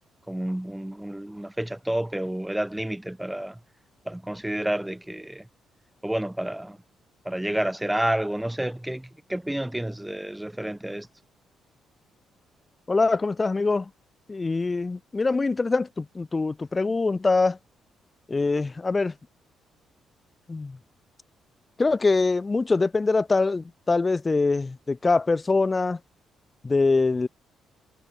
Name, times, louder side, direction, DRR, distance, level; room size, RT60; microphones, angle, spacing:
voice 1, 0.3-3.6 4.1-5.5 6.0-6.8 7.2-11.1, right 1 dB, 5° right, 0.8 m, -30 dB
voice 2, 12.9-13.9 14.3-17.6 18.3-19.1 20.5-20.8 21.8-26.0 26.6-27.3, left 3 dB, 25° left, 0.4 m, -23 dB
cardioid pair, 90°, 0 cm